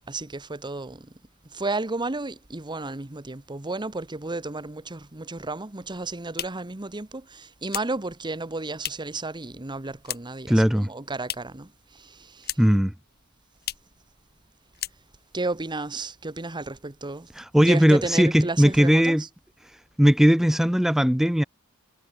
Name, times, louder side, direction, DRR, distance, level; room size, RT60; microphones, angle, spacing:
voice 1, 0.1-1.1 1.5-12.6 15.3-17.3 17.6-19.3, right 2 dB, 20° right, 1.1 m, -33 dB
sound 1, 5.9-9.2 9.5-10.5 10.8-11.7 12.0-12.9 13.1-13.2 13.6-14.0 14.3-14.5 14.7-15.4, left 11 dB, 45° left, 1.6 m, -37 dB
voice 2, 10.5-10.9 12.6-12.9 17.4-19.2 20.0-21.4, equal, ahead, 0.3 m, -19 dB
head